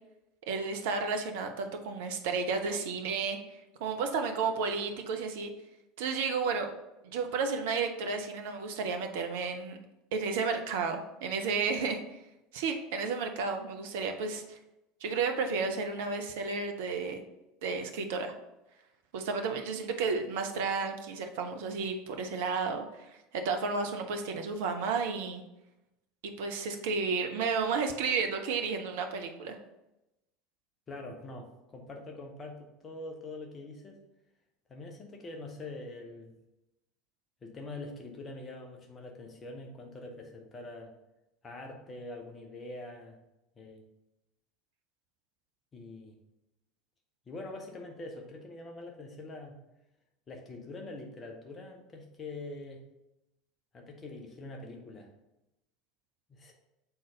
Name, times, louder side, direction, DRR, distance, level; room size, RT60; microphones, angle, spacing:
voice 1, 0.5-3.4 3.8-5.5 6.0-6.7 7.0-9.8 10.1-12.2 12.5-14.6 15.0-17.2 17.6-18.3 19.1-25.4 26.2-29.6, right 4 dB, 60° right, 5 dB, 0.7 m, -32 dB
voice 2, 30.9-34.0 34.7-36.3 37.4-40.9 41.4-43.2 43.6-43.8 45.7-46.2 47.3-49.5 50.3-52.8 53.7-55.1 56.3-56.5, left 2 dB, 25° left, 2 dB, 1.2 m, -44 dB
7.2 x 4.0 x 3.7 m, 0.93 s
figure-of-eight pair, 70°, 0 cm